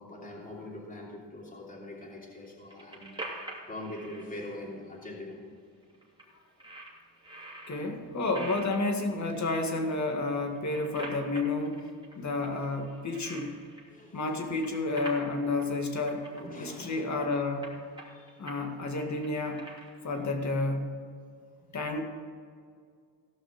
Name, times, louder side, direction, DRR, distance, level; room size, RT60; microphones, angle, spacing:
voice 1, 0.0-3.1 3.7-5.4 12.4-12.5 13.9-14.6 16.3-17.2 18.1-18.4 20.1-20.2 21.7-21.9, left 1 dB, 20° left, -4 dB, 2.9 m, -43 dB
sound 1, 2.4-4.2 5.0-5.1 5.4-5.5 5.8-6.2 6.6-7.9 8.3-9.9 10.4-12.1 12.4-14.1 14.4-15.3 15.6-15.7 16.0-16.4 16.9-17.2 17.6-18.6 19.0-20.1, right 1 dB, 10° right, 3.0 m, -44 dB
voice 2, 7.7-11.9 12.2-13.5 14.1-16.3 16.6-17.7 18.4-19.6 20.0-20.9 21.7-22.0, left 2 dB, 40° left, 3 dB, 2.0 m, -30 dB
16.5 x 5.8 x 6.6 m, 2.1 s
cardioid pair, 115°, 43 cm